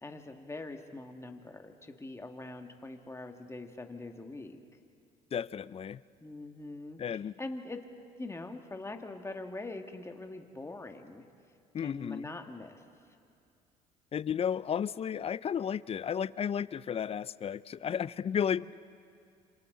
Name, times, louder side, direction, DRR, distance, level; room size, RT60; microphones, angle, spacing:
voice 1, 0.0-4.6 6.2-7.0 7.4-7.8 8.2-11.2 11.8-12.8 18.0-18.4, left 2 dB, 15° left, 5 dB, 1.9 m, -43 dB
voice 2, 5.3-6.0 7.0-7.3 11.7-12.3 14.1-18.7, left 8 dB, 35° left, 20 dB, 0.5 m, -33 dB
27.0 x 26.5 x 3.9 m, 2.5 s
hypercardioid pair, 70°, 18 cm